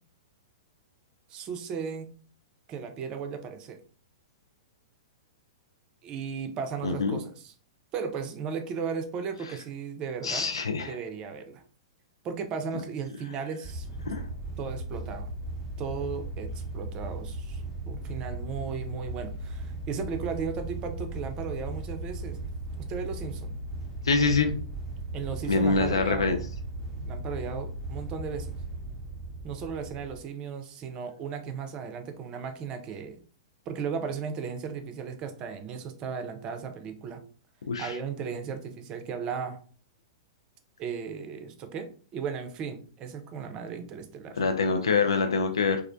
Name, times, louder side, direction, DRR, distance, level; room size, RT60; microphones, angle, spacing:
voice 1, 1.3-2.1 2.7-3.8 6.0-7.5 7.9-10.5 10.8-11.6 12.2-13.9 14.6-15.3 15.8-22.4 22.9-23.6 25.1-26.4 27.0-28.5 29.4-33.2 33.7-37.2 37.8-39.6 40.8-44.4, right 6 dB, 30° right, 7 dB, 0.4 m, -36 dB
voice 2, 6.8-7.2 10.2-11.0 14.1-14.2 24.0-24.6 25.5-26.4 37.7-37.9 44.4-45.8, left 4 dB, 80° left, 7 dB, 0.3 m, -25 dB
sound 1, 13.6-30.2, right 2 dB, 15° left, 0.7 m, -37 dB
2.3 x 2.1 x 2.5 m, 0.42 s
hypercardioid pair, 110°, 3 cm